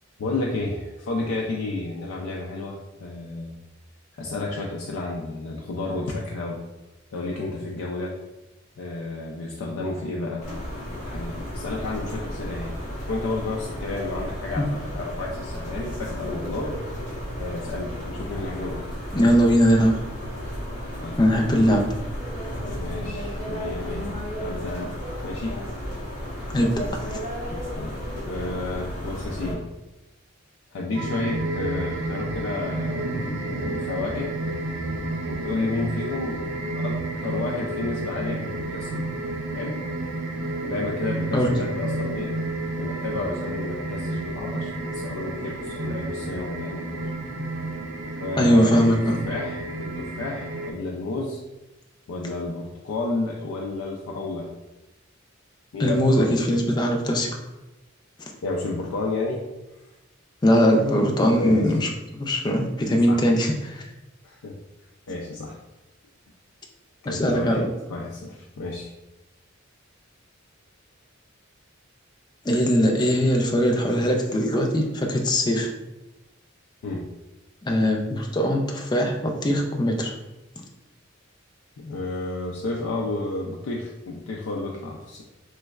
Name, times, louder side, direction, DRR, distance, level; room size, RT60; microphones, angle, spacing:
voice 1, 0.2-3.6 4.2-6.7 7.1-8.2 8.8-10.5 10.9-12.8 13.1-16.7 17.4-18.9 21.0-21.2 21.5-21.6 22.8-25.7 27.7-28.0 28.3-29.7 30.7-34.3 35.3-36.5 36.7-39.0 39.5-39.8 40.6-42.3 42.8-47.0 48.2-51.4 52.1-54.5 55.7-56.7 58.4-59.4 61.1-61.7 63.1-63.3 64.2-64.6 65.1-65.6 67.0-67.6 67.9-68.9 76.8-77.1 81.8-85.2, left 2 dB, 85° left, -2 dB, 0.4 m, -31 dB
sound 1, 10.4-29.5, equal, 40° left, 1.2 m, -33 dB
voice 2, 19.1-20.0 21.2-21.8 26.5-26.7 27.1-27.2 41.3-41.5 48.4-49.2 55.8-57.3 60.4-61.9 62.2-63.8 67.1-67.7 72.5-75.7 77.6-80.1, equal, 20° left, 2 dB, 0.4 m, -20 dB
sound 2, 30.9-50.7, right 2 dB, 60° right, 0.4 m, -31 dB
3.2 x 3.1 x 2.3 m, 1.0 s
head